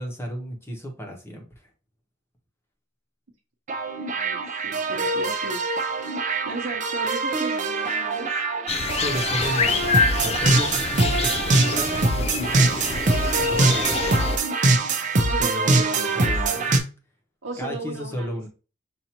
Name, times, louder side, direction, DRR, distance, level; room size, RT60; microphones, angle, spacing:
voice 1, 0.0-1.5 9.0-12.8 13.5-14.2 15.4-16.7 17.6-18.5, equal, 15° left, 1 dB, 0.9 m, -33 dB
sound 1, 3.7-16.8, right 3 dB, 40° right, 0.7 m, -23 dB
voice 2, 4.1-5.7 6.5-8.3 15.2-16.3 17.4-18.4, right 2 dB, 85° right, -2 dB, 0.9 m, -35 dB
sound 2, 8.7-14.4, left 5 dB, 30° left, 0.4 m, -27 dB
5.6 x 2.6 x 2.9 m, 0.33 s
head